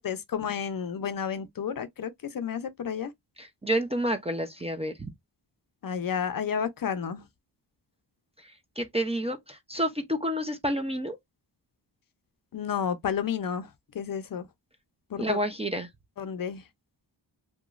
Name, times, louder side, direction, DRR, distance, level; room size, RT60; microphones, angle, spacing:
voice 1, 0.0-3.1 5.8-7.2 12.5-13.7 13.9-14.5 15.1-15.4 16.2-16.6, left 7 dB, 50° left, 0.5 m, -31 dB
voice 2, 3.4-5.1 8.4-11.2 15.2-15.9, right 1 dB, 15° right, 0.5 m, -29 dB
2.9 x 2.2 x 2.4 m
cardioid pair, 70°, 44 cm